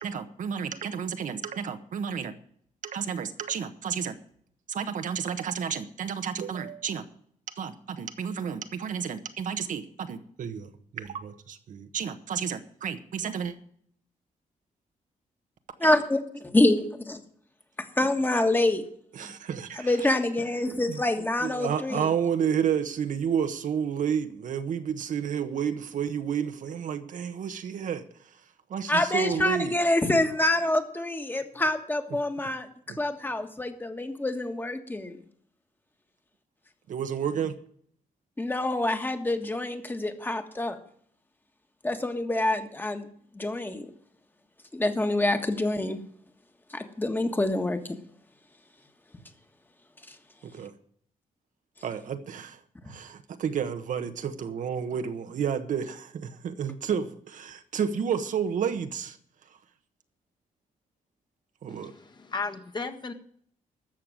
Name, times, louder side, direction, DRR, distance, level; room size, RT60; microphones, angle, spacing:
voice 1, 0.0-2.3 2.8-4.1 4.7-7.0 7.6-13.5 15.8-15.9 19.1-19.9 20.7-21.1 21.4-28.0 28.7-29.7 32.9-33.0 36.9-37.6 50.5-50.7 51.8-52.6 52.9-59.2 61.6-61.9, right 7 dB, 70° right, 8 dB, 1.2 m, -31 dB
voice 2, 15.8-17.2 18.0-18.8 19.8-22.1 28.9-32.7 33.0-35.2 38.4-40.8 41.8-43.1 43.3-43.9 44.7-46.0 46.7-47.8 50.1-50.2, left 1 dB, 15° left, 7 dB, 1.5 m, -26 dB
voice 3, 61.7-63.1, left 4 dB, 30° left, 6 dB, 1.4 m, -35 dB
13.5 x 6.7 x 9.0 m, 0.62 s
wide cardioid pair, 130°, 14 cm